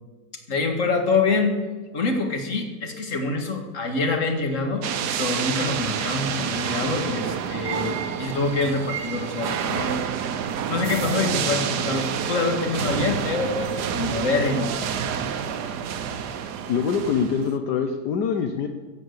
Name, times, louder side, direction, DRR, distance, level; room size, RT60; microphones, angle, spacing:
voice 1, 0.5-1.6 1.9-4.9 5.2-10.0 10.7-14.7 15.1-15.2, left 3 dB, 50° left, 4 dB, 2.0 m, -25 dB
sound 1, 4.8-17.5, right 8 dB, 75° right, 1.4 m, -28 dB
voice 2, 16.7-18.7, left 6 dB, 75° left, 5 dB, 1.4 m, -24 dB
15.5 x 8.2 x 8.1 m, 1.4 s
omnidirectional pair, 1.8 m